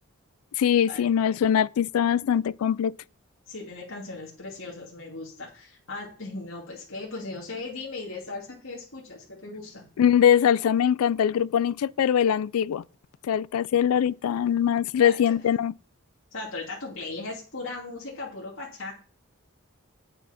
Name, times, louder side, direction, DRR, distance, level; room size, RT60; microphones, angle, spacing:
voice 1, 0.6-2.9 10.0-12.8 13.3-15.7, left 9 dB, 90° left, 0.3 m, -22 dB
voice 2, 3.5-9.9 15.0-15.2 16.3-18.9, left 3 dB, 70° left, 2.5 m, -38 dB
8.4 x 6.8 x 5.7 m
head